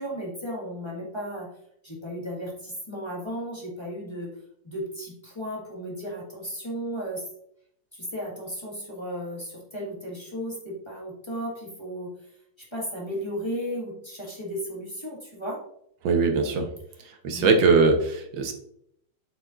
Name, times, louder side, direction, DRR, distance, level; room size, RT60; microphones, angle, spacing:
voice 1, 0.0-1.5 1.8-4.3 4.6-7.3 7.9-15.6 16.9-17.6, equal, 15° left, -4 dB, 1.7 m, -35 dB
voice 2, 16.0-16.7 17.2-18.5, right 4 dB, 80° right, 5 dB, 1.7 m, -21 dB
7.8 x 6.8 x 2.5 m, 0.72 s
omnidirectional pair, 2.0 m